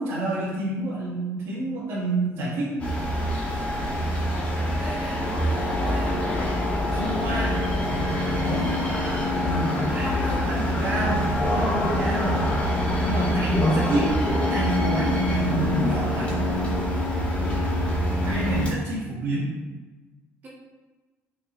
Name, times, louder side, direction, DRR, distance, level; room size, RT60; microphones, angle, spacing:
voice 1, 0.0-2.9 6.9-7.7 8.4-8.7 9.4-12.5 13.0-14.1 14.5-16.4 18.3-19.5, right 1 dB, 65° right, -10 dB, 2.3 m, -28 dB
sound 1, 2.8-18.7, left 1 dB, 20° left, 2.2 m, -25 dB
voice 2, 4.6-6.2 8.5-9.1 9.7-10.5 20.4-20.5, right 2 dB, 35° right, -6 dB, 1.7 m, -38 dB
6.5 x 5.4 x 3.5 m, 1.2 s
cardioid pair, 160°, 5 cm